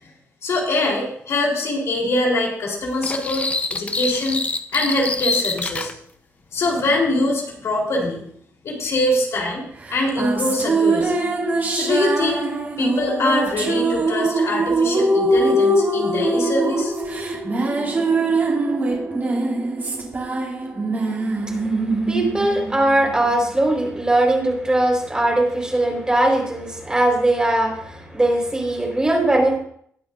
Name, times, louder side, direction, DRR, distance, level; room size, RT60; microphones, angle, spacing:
voice 1, 0.4-4.4 4.7-5.9 6.5-8.2 8.6-9.6 9.9-11.2 11.7-12.4 12.8-16.9, left 1 dB, 65° left, -2 dB, 3.9 m, -23 dB
sound 1, 3.0-5.9, left 3 dB, 25° left, 0.8 m, -25 dB
sound 2, 9.9-23.5, right 2 dB, 35° right, 4.0 m, -22 dB
voice 2, 21.5-29.6, right 1 dB, 15° right, -1 dB, 4.6 m, -20 dB
21.0 x 8.8 x 2.6 m, 0.65 s
cardioid pair, 115°, 5 cm